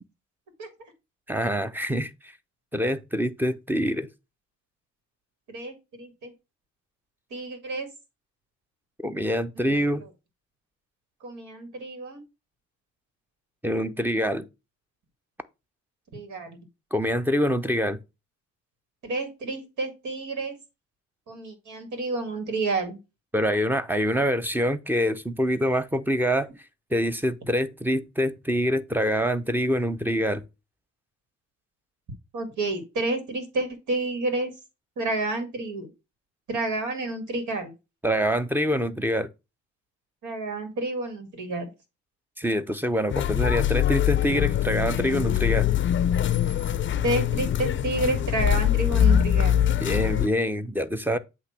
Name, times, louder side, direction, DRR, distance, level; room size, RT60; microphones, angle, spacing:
voice 1, 1.3-2.1 2.7-4.1 9.0-10.0 13.6-14.5 16.9-18.0 23.3-26.5 26.9-30.4 38.0-39.3 42.4-45.7 49.8-51.2, equal, 5° right, 0.6 m, -25 dB
voice 2, 5.5-6.3 7.3-7.9 9.6-9.8 11.2-12.2 16.1-16.6 19.0-20.6 21.3-23.0 32.3-34.5 35.0-35.9 36.5-37.7 40.2-41.7 47.0-49.6, right 2 dB, 70° right, 2.1 m, -30 dB
sound 1, 43.1-50.3, left 10 dB, 40° left, 0.5 m, -23 dB
8.1 x 2.9 x 5.8 m
cardioid pair, 90°, 30 cm